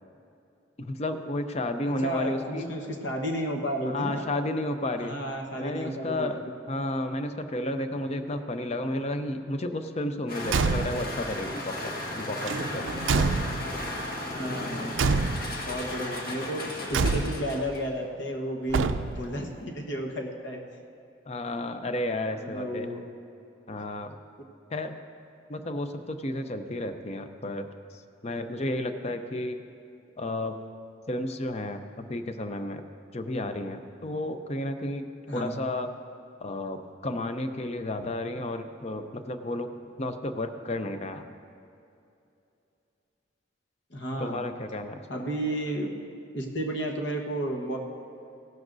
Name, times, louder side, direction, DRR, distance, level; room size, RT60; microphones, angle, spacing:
voice 1, 0.8-2.7 3.9-5.1 5.6-12.9 21.3-22.9 23.7-24.2 24.7-25.0 25.5-29.6 30.2-30.6 31.1-32.8 33.1-35.9 36.4-39.7 40.0-41.3 44.2-45.2, left 1 dB, 35° left, 8 dB, 0.5 m, -32 dB
voice 2, 1.8-4.2 5.0-6.3 14.3-14.9 15.6-20.6 22.4-23.0 35.3-35.6 43.9-44.5 45.1-45.9 46.3-47.8, equal, 70° left, 1 dB, 1.2 m, -32 dB
sound 1, 10.3-17.9, left 1 dB, 50° left, 1.4 m, -35 dB
Car / Truck / Slam, 10.4-11.2 12.4-13.9 14.9-15.7 16.9-17.6 18.7-19.4, right 4 dB, 85° right, 0.4 m, -27 dB
16.5 x 12.0 x 2.6 m, 2.7 s
head